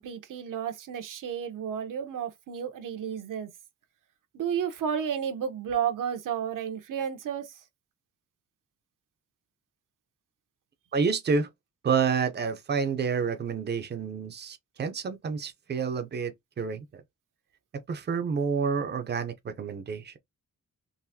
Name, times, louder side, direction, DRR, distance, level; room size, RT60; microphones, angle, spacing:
voice 1, 0.0-3.5 4.3-7.5, right 8 dB, 80° right, 0.9 m, -32 dB
voice 2, 10.9-11.5 11.8-16.9 17.7-20.2, right 5 dB, 35° right, 0.6 m, -29 dB
3.9 x 2.5 x 2.7 m
wide cardioid pair, 160°, 32 cm